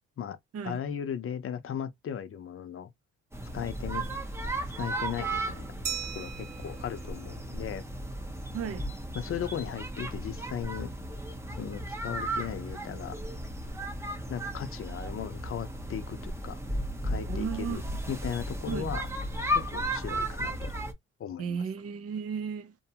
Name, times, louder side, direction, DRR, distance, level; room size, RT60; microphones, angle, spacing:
voice 1, 0.6-2.9 3.5-4.0 4.7-5.7 6.1-7.8 9.1-10.9 11.5-13.2 14.3-16.6 17.0-17.8 18.1-19.1 19.5-20.7 21.2-21.6, left 8 dB, 45° left, 0.6 m, -37 dB
sound 1, 3.3-20.9, right 1 dB, 10° right, 0.6 m, -35 dB
Glass, 5.9-8.3, right 8 dB, 80° right, 0.8 m, -40 dB
voice 2, 8.5-8.9 17.3-17.8 18.7-18.9 21.4-22.7, right 7 dB, 50° right, 0.6 m, -34 dB
2.6 x 2.2 x 2.8 m
cardioid pair, 90°, 30 cm